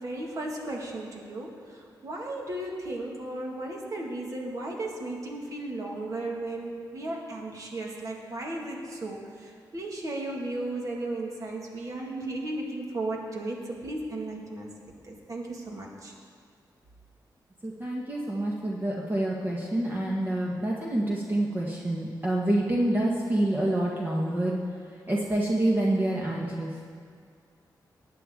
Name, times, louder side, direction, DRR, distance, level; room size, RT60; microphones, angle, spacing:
voice 1, 0.0-14.7 15.1-16.1, right 2 dB, 45° right, -1 dB, 2.1 m, -35 dB
voice 2, 17.6-24.6 25.1-26.7, right 1 dB, 25° right, -3 dB, 1.4 m, -27 dB
19.0 x 9.0 x 3.8 m, 2.1 s
wide cardioid pair, 125°, 8 cm